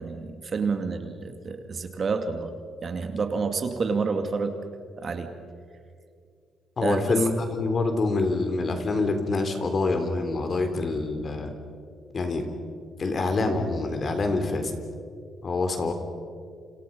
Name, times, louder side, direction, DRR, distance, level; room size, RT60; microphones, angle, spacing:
voice 1, 0.0-2.5 2.8-4.6 5.0-5.3 6.8-7.0, right 4 dB, 45° right, 6 dB, 2.5 m, -29 dB
voice 2, 6.8-11.5 12.1-12.5 13.0-14.8 15.4-15.9, left 3 dB, 40° left, 6 dB, 3.7 m, -26 dB
29.0 x 27.5 x 5.5 m, 2.2 s
cardioid pair, 90°, 0 cm